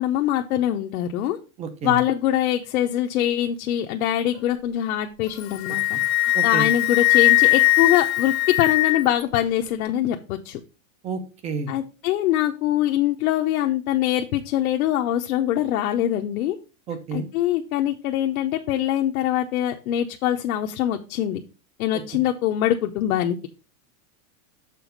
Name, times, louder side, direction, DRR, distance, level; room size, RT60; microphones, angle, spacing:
voice 1, 0.0-1.4 1.8-10.6 11.7-16.6 17.1-21.4 21.8-23.4, left 12 dB, 75° left, 3 dB, 0.8 m, -23 dB
voice 2, 1.6-2.0 6.3-6.7 11.0-11.7 16.9-17.3, right 5 dB, 15° right, 10 dB, 0.5 m, -30 dB
Wind instrument woodwind instrument, 5.3-9.2, left 20 dB, 45° left, 0.8 m, -20 dB
6.9 x 4.0 x 5.2 m, 0.32 s
supercardioid pair, 165°, 44 cm